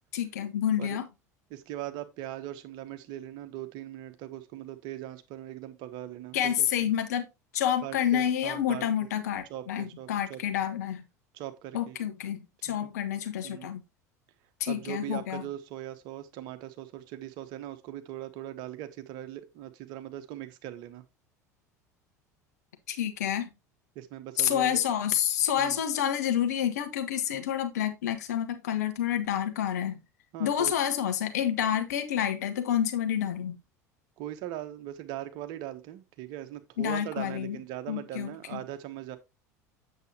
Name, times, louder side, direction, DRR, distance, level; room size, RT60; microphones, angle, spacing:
voice 1, 0.1-1.1 6.3-7.2 7.5-11.0 11.7-13.8 14.6-15.4 22.9-23.5 24.4-30.0 30.4-33.6 36.8-37.6 37.9-38.6, left 10 dB, 75° left, 1.3 m, -29 dB
voice 2, 1.5-6.9 7.8-9.1 9.5-10.4 11.3-12.0 12.7-12.9 13.4-13.7 14.7-21.0 23.9-24.8 25.6-25.8 30.3-30.7 34.2-39.2, right 13 dB, 55° right, 1.1 m, -40 dB
8.1 x 7.2 x 2.9 m
hypercardioid pair, 75°, 9 cm